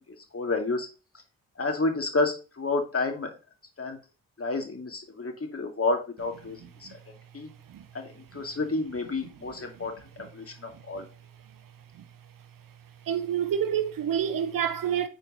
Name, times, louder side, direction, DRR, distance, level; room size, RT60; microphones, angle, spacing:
voice 1, 0.3-0.9 1.6-3.3 3.8-4.0 4.4-6.9 7.3-7.5 7.9-9.9 10.3-11.1, left 3 dB, 40° left, 2.5 m, -30 dB
voice 2, 13.1-15.1, right 9 dB, 65° right, 1.0 m, -28 dB
6.9 x 4.5 x 5.6 m
supercardioid pair, 45°, 36 cm